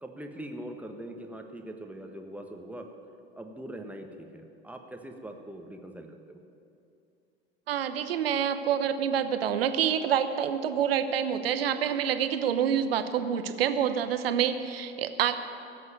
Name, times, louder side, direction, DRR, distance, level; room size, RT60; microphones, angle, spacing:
voice 1, 0.0-2.9 3.3-6.4, right 1 dB, 5° right, 4 dB, 1.4 m, -42 dB
voice 2, 7.7-15.4, right 8 dB, 70° right, 10 dB, 1.0 m, -27 dB
17.0 x 8.0 x 9.1 m, 2.6 s
figure-of-eight pair, 80°, 31 cm